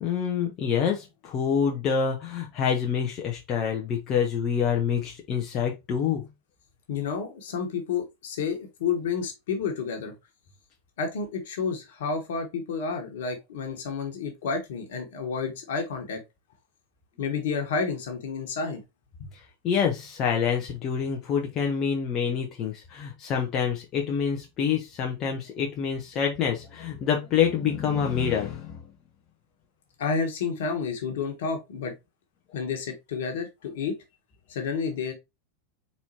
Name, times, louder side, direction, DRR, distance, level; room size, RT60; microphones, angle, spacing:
voice 1, 0.0-6.3 19.6-28.8, left 7 dB, 40° left, 0.8 m, -27 dB
voice 2, 6.9-10.1 11.0-16.2 17.2-18.8 19.2-19.3 30.0-31.9 32.5-33.9 34.5-35.1, left 5 dB, 65° left, 1.4 m, -30 dB
4.4 x 4.2 x 2.7 m
figure-of-eight pair, 85°, 0 cm